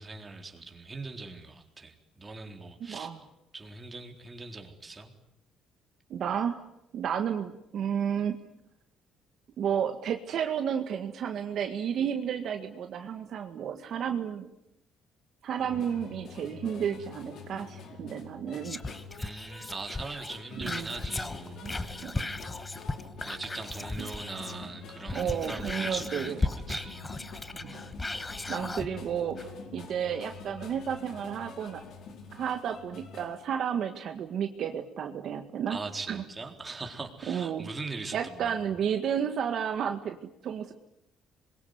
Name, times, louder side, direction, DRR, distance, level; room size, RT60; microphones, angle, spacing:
voice 1, 0.0-3.1 3.5-5.1 19.2-22.1 23.2-27.0 35.7-38.8, right 3 dB, 20° right, 4 dB, 4.0 m, -41 dB
voice 2, 2.9-3.2 6.1-6.6 6.9-8.4 9.6-14.5 15.4-18.8 20.6-20.9 21.6-21.8 22.0-22.3 24.0-24.1 25.1-26.4 27.6-27.8 28.5-31.8 32.3-35.8 36.1-36.2 37.3-37.7 38.1-40.2 40.4-40.7, right 8 dB, 55° right, 6 dB, 1.8 m, -32 dB
sound 1, 15.6-33.4, left 5 dB, 60° left, 4.6 m, -46 dB
Whispering, 18.6-24.6 25.0-28.9 29.4-29.5, left 2 dB, 15° left, 1.1 m, -36 dB
27.0 x 22.5 x 9.6 m, 0.81 s
cardioid pair, 130°, 0 cm